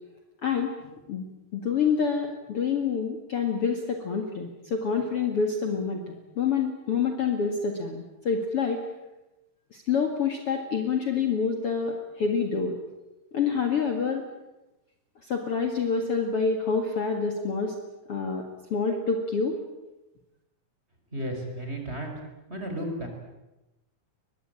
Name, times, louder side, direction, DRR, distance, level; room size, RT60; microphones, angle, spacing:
voice 1, 0.4-0.8 1.1-1.2 1.5-8.8 9.7-12.8 13.3-14.2 15.3-17.8 18.1-18.4 18.7-19.5, left 5 dB, 45° left, 3 dB, 2.7 m, -27 dB
voice 2, 21.1-22.2 22.5-23.1, right 1 dB, 15° right, 3 dB, 5.2 m, -33 dB
23.5 x 21.0 x 9.0 m, 1.0 s
omnidirectional pair, 4.0 m